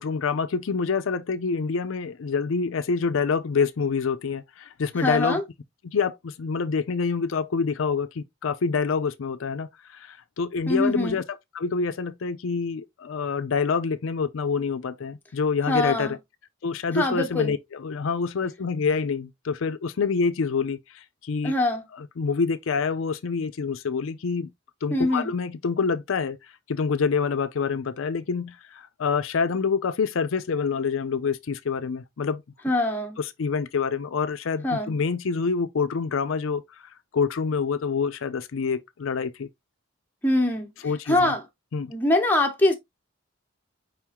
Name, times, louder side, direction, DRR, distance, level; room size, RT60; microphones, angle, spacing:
voice 1, 0.0-5.4 5.8-16.2 16.6-21.5 21.9-24.5 24.8-26.4 26.7-32.4 33.2-39.5 40.8-41.3 41.7-41.9, left 5 dB, 70° left, 0.5 m, -27 dB
voice 2, 5.0-5.4 10.7-11.2 15.7-16.1 16.9-17.5 21.4-21.8 24.9-25.3 32.6-33.2 34.6-34.9 40.2-40.7 41.1-41.4 41.9-42.8, left 1 dB, 10° left, 0.9 m, -23 dB
5.0 x 3.6 x 2.9 m
head